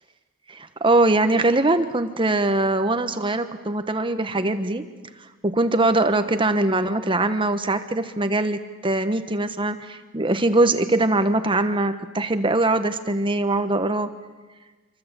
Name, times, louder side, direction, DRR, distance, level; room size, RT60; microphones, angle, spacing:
voice 1, 0.5-4.8 5.4-14.1, right 2 dB, 25° right, 9 dB, 1.2 m, -22 dB
27.0 x 25.0 x 8.3 m, 1.3 s
head